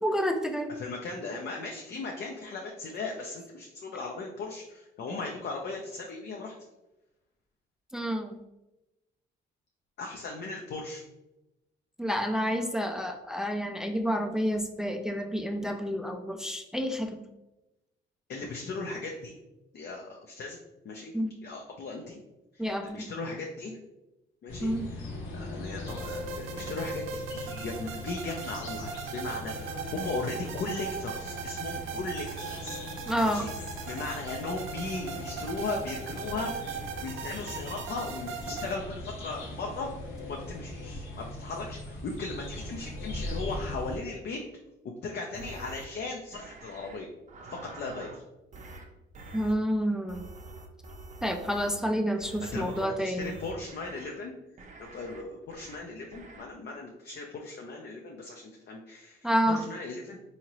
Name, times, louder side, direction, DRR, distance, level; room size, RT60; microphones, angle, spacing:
voice 1, 0.0-0.7 7.9-8.4 12.0-17.2 21.1-21.3 22.6-23.1 24.6-24.9 33.1-33.5 49.3-50.2 51.2-53.4 59.2-59.6, equal, 5° right, 5 dB, 0.3 m, -29 dB
voice 2, 0.7-6.5 10.0-11.0 18.3-19.3 19.7-20.6 20.8-21.1 21.4-22.2 22.5-23.8 24.4-25.1 25.3-32.3 32.6-32.8 33.2-33.5 33.9-36.8 37.0-39.9 40.2-44.4 45.0-47.1 47.5-48.2 52.4-54.3 54.8-59.2 59.5-60.2, left 3 dB, 60° left, 1 dB, 0.6 m, -37 dB
sound 1, 24.5-44.0, left 1 dB, 80° left, 0.9 m, -40 dB
sound 2, 25.9-38.8, right 6 dB, 90° right, 0.5 m, -39 dB
sound 3, 45.3-45.9 46.3-47.0 47.3-48.2 48.5-48.8 49.1-49.5 50.1-51.8 52.2-52.8 53.2-54.1 54.6-55.2 55.5-55.8 56.1-56.4, right 2 dB, 40° right, 0.6 m, -46 dB
3.7 x 2.8 x 3.0 m, 0.96 s
cardioid pair, 90°, 20 cm